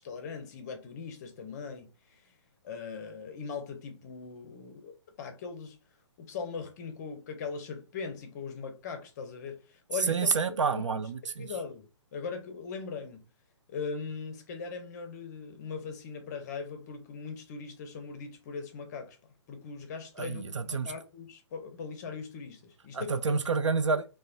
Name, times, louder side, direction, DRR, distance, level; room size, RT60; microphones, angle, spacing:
voice 1, 0.0-2.2 2.6-4.9 5.2-5.8 6.2-10.6 11.4-11.9 12.1-13.2 13.7-19.2 19.5-23.4, left 5 dB, 35° left, 0.6 m, -40 dB
voice 2, 10.1-11.5 20.2-20.9 22.9-24.1, right 5 dB, 80° right, 0.4 m, -29 dB
3.0 x 2.1 x 2.5 m
figure-of-eight pair, 130°, 15 cm